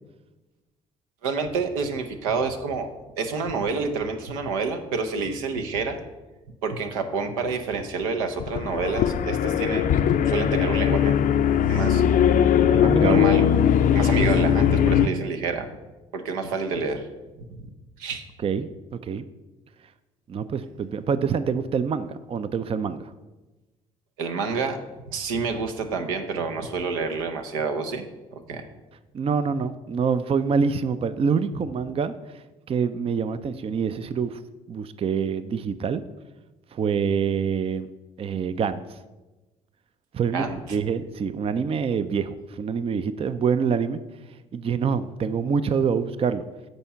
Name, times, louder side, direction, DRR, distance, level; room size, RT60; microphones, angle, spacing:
voice 1, 1.2-2.9 3.2-6.0 6.6-11.2 11.7-12.0 12.5-13.4 13.9-15.7 16.1-17.1 17.5-17.7 18.0-18.2 24.2-24.8 25.1-28.0 28.5-28.6 40.3-40.8, right 4 dB, 80° right, 6 dB, 0.8 m, -28 dB
sound 1, 8.4-15.1, left 8 dB, 50° left, 0.5 m, -20 dB
voice 2, 12.8-13.3 18.4-18.7 19.0-19.2 20.3-23.1 29.1-34.4 34.7-36.0 36.7-37.9 38.2-39.0 40.1-40.4 40.7-44.0 44.5-46.4, right 6 dB, 35° right, 13 dB, 0.4 m, -26 dB
8.1 x 4.4 x 5.6 m, 1.1 s
hypercardioid pair, 55°, 18 cm